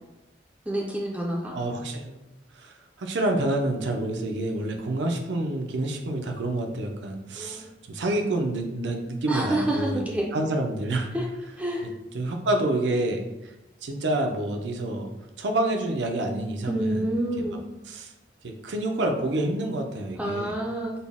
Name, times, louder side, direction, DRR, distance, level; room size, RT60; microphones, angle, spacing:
voice 1, 0.7-1.6 7.4-7.7 9.3-10.3 11.1-11.3 11.6-11.9 16.7-17.6 20.2-20.9, right 1 dB, 5° right, -3 dB, 0.3 m, -28 dB
voice 2, 1.5-2.2 2.6-10.0 10.3-11.1 12.1-13.2 13.8-15.1 15.4-17.1 17.4-17.6 17.9-18.1 18.4-20.5, right 1 dB, 80° right, 4 dB, 0.5 m, -28 dB
4.1 x 2.1 x 3.5 m, 0.98 s
head